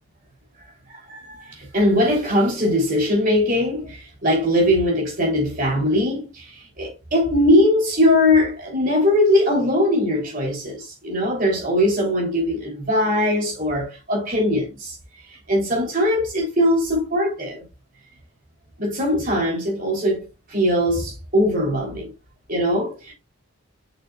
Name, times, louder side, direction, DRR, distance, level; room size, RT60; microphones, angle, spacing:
voice 1, 0.9-15.0 15.3-17.6 18.8-22.1 22.5-23.1, left 1 dB, 40° right, 3.3 m, -21 dB
6.8 x 6.2 x 2.4 m
head